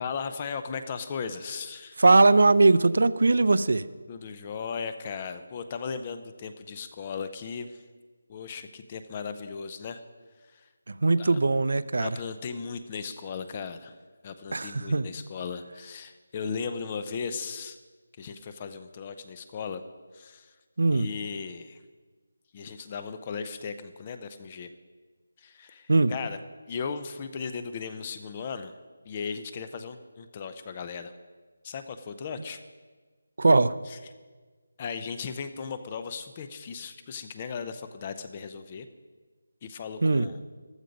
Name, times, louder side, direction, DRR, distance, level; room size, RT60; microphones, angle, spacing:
voice 1, 0.0-2.0 4.1-7.8 8.3-10.0 10.5-10.6 11.2-11.4 12.0-13.9 14.2-17.8 18.2-19.8 20.1-20.5 20.9-21.8 22.5-24.7 25.4-26.4 26.7-28.7 29.1-31.1 31.6-32.6 33.9-34.0 34.8-38.9 39.6-40.4, left 6 dB, 15° left, 10 dB, 0.5 m, -36 dB
voice 2, 2.0-3.8 10.9-12.1 14.5-15.1 20.8-21.1 25.9-26.1 33.4-33.7 40.0-40.3, right 3 dB, 55° right, 16 dB, 0.5 m, -20 dB
14.5 x 12.5 x 5.2 m, 1.4 s
figure-of-eight pair, 175°, 0 cm